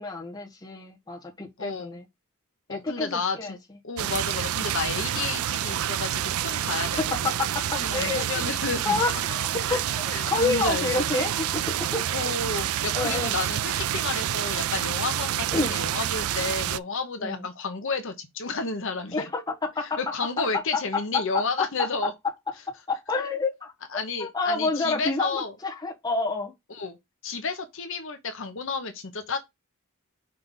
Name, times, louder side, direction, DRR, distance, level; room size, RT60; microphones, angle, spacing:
voice 1, 0.0-2.0 2.7-3.6 4.0-4.1 7.0-8.5 8.8-12.3 12.9-13.3 15.5-15.7 17.2-17.4 19.1-20.0 21.3-21.7 22.9-23.7 24.2-26.5, left 3 dB, 20° left, 1.5 m, -29 dB
voice 2, 1.6-2.0 2.7-3.6 3.8-7.3 7.7-9.0 9.7-9.8 10.1-11.1 12.1-19.3 19.8-22.1 23.9-25.5 26.7-27.0 27.2-29.4, left 4 dB, 60° left, 1.0 m, -31 dB
sound 1, 4.0-16.8, right 11 dB, 85° right, 0.4 m, -28 dB
5.5 x 3.4 x 5.5 m
head